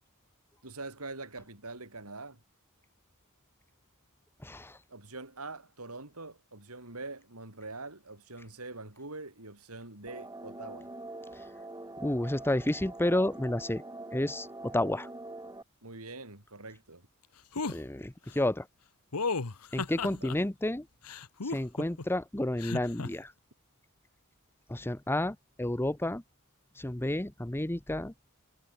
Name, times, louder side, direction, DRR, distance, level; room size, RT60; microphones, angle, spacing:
voice 1, 0.6-2.4 4.9-10.9 15.8-17.1 20.0-20.4, right 3 dB, 70° right, 6.6 m, -44 dB
voice 2, 4.4-4.8 12.0-13.8 14.1-15.1 17.7-18.7 19.7-20.8 21.4-23.3 24.7-26.2 26.8-28.1, left 1 dB, 10° left, 0.9 m, -31 dB
sound 1, 10.1-15.6, right 2 dB, 15° right, 5.3 m, -44 dB
sound 2, 17.5-17.8 19.1-20.4 21.0-22.0 22.6-23.1, left 4 dB, 85° left, 1.3 m, -34 dB
head